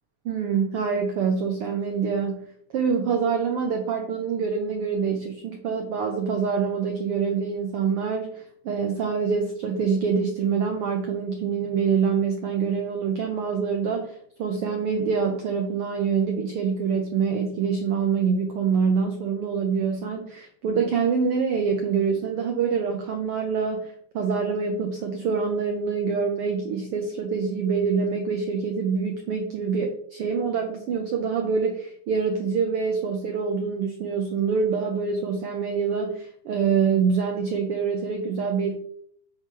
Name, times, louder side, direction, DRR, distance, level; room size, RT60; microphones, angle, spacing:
voice 1, 0.2-2.4 2.7-14.1 14.4-38.8, right 6 dB, 80° right, 4 dB, 1.3 m, -25 dB
6.8 x 3.9 x 6.0 m, 0.63 s
omnidirectional pair, 3.5 m